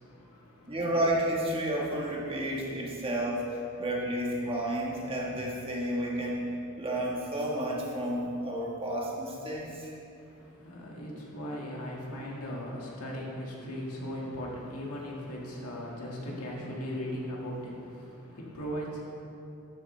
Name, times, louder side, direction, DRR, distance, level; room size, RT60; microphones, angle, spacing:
voice 1, 0.0-0.8 10.2-19.0, equal, 85° left, -3 dB, 2.0 m, -38 dB
voice 2, 0.7-9.9, right 1 dB, 25° right, -3 dB, 1.5 m, -31 dB
12.5 x 8.3 x 3.3 m, 2.7 s
head